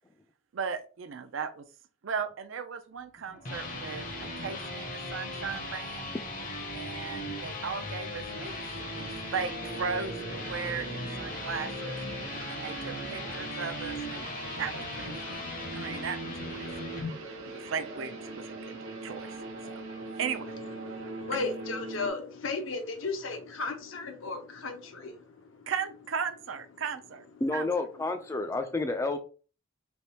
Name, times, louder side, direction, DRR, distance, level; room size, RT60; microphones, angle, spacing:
voice 1, 0.5-1.7 2.0-6.1 6.7-8.6 8.9-12.0 12.5-14.3 14.6-15.5 15.7-17.0 17.5-19.4 19.6-19.8 20.2-20.5 25.7-27.2 27.5-27.7, right 6 dB, 65° right, 0.4 m, -37 dB
sound 1, 3.2-17.1, left 1 dB, 40° left, 0.7 m, -38 dB
sound 2, 8.3-22.1, right 3 dB, 85° right, 0.9 m, -42 dB
voice 2, 20.3-25.7 26.7-26.8 28.0-28.1, left 3 dB, 70° left, 0.8 m, -36 dB
voice 3, 27.4-29.2, left 2 dB, 15° left, 0.3 m, -30 dB
3.4 x 3.0 x 2.8 m
head